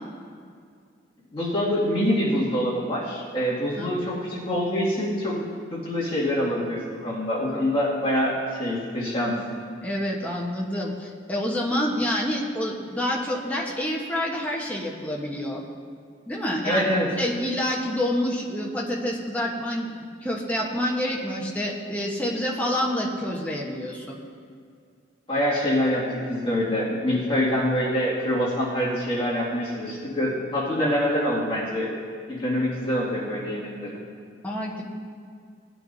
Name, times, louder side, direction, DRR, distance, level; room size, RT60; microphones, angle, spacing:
voice 1, 1.3-5.4 5.7-9.4 16.6-17.2 25.3-31.9 32.3-34.0, equal, 30° left, -8 dB, 2.1 m, -25 dB
voice 2, 9.8-15.6 16.3-16.8 17.2-19.9 20.2-24.2 34.4-34.8, left 1 dB, 10° left, -3 dB, 1.1 m, -27 dB
17.5 x 9.2 x 2.7 m, 2.2 s
head